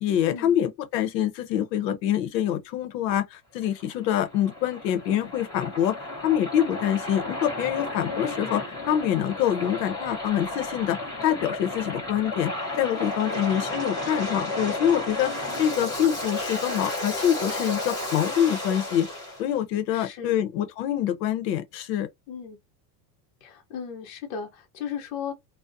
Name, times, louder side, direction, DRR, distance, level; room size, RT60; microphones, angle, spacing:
voice 1, 0.0-6.0 6.2-15.3 15.6-19.1 19.4-22.1, left 10 dB, 85° left, 0.7 m, -25 dB
Waves surf, 3.6-19.4, left 2 dB, 10° left, 0.8 m, -33 dB
voice 2, 13.3-13.7 19.9-20.4 22.3-22.6 23.4-25.3, left 7 dB, 55° left, 0.8 m, -36 dB
2.4 x 2.0 x 2.5 m
supercardioid pair, 180°, 48 cm